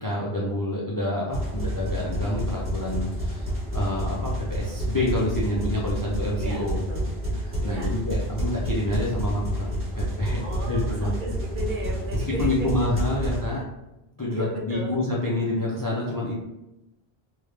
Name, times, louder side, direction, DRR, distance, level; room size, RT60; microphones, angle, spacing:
voice 1, 0.0-6.8 7.4-9.7 9.9-10.4 10.7-11.1 12.1-13.6 14.2-16.3, left 1 dB, 30° left, -3 dB, 0.4 m, -28 dB
sound 1, 1.3-13.4, equal, 15° right, 1.0 m, -29 dB
voice 2, 6.4-7.1 7.6-8.0 10.4-12.9 14.3-15.0, right 1 dB, 60° right, -1 dB, 0.7 m, -35 dB
3.2 x 2.4 x 3.2 m, 0.95 s
omnidirectional pair, 1.1 m